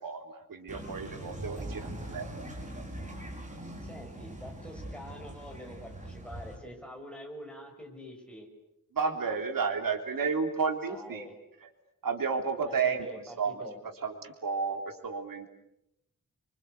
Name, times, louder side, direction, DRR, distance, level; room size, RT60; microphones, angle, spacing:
voice 1, 0.0-2.3 8.9-11.2 12.0-13.1 13.4-13.6 14.0-15.5, right 5 dB, 90° right, 5 dB, 3.3 m, -32 dB
sound 1, 0.7-6.6, right 1 dB, 20° right, 5.3 m, -41 dB
voice 2, 3.8-8.5 10.9-11.4 12.6-13.8, equal, 5° left, 1 dB, 6.3 m, -46 dB
29.5 x 25.0 x 8.1 m, 0.82 s
wide cardioid pair, 170°, 33 cm